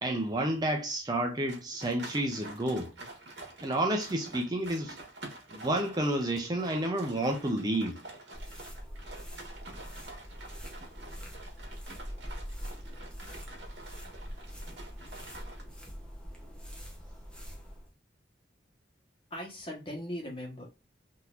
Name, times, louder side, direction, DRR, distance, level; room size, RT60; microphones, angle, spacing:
voice 1, 0.0-2.9 3.6-5.0 5.5-8.0, right 1 dB, 20° right, 0.4 m, -30 dB
sound 1, 1.5-15.6, right 2 dB, 65° right, 1.3 m, -48 dB
sound 2, 8.3-17.9, equal, 5° left, 0.8 m, -44 dB
voice 2, 19.3-20.7, equal, 30° left, 1.2 m, -39 dB
3.8 x 2.8 x 2.4 m
head